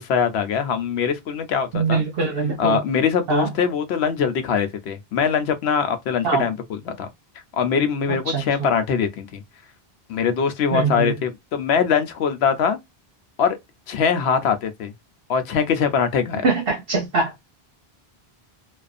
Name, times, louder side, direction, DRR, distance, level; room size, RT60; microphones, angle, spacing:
voice 1, 0.0-2.0 2.6-7.1 7.5-9.4 10.1-12.8 13.4-13.6 13.9-14.9 15.3-16.4, left 6 dB, 85° left, 0.8 m, -22 dB
voice 2, 1.7-2.8 3.3-3.5 6.2-6.4 8.3-8.4 10.7-11.1 16.4-17.4, right 4 dB, 65° right, 0.9 m, -22 dB
2.5 x 2.3 x 2.3 m
omnidirectional pair, 1.1 m